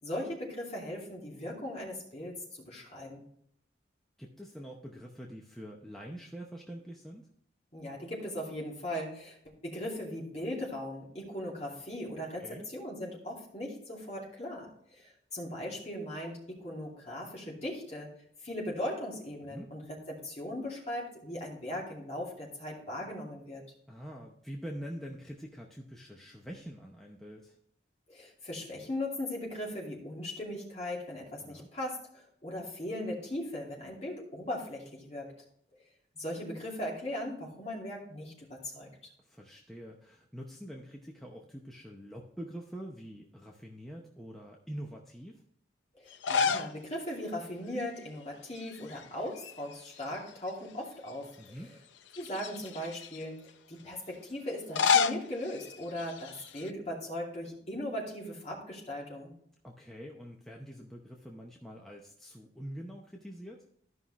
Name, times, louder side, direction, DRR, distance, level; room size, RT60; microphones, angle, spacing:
voice 1, 0.0-3.2 7.7-9.4 9.6-18.1 18.4-23.6 28.1-35.3 36.1-38.9 46.0-51.6 52.2-59.3, left 1 dB, 35° left, -3 dB, 2.6 m, -38 dB
voice 2, 4.2-7.3 12.3-12.7 19.5-19.7 23.9-27.6 31.4-31.7 39.2-45.4 51.4-51.7 59.6-63.7, equal, ahead, -1 dB, 0.7 m, -45 dB
sound 1, 46.1-46.8 47.1-47.2 48.6-49.0 49.3-50.5 51.1-51.2 52.1-53.2 54.5-56.7, left 6 dB, 90° left, 0.5 m, -31 dB
13.5 x 5.6 x 3.0 m, 0.70 s
head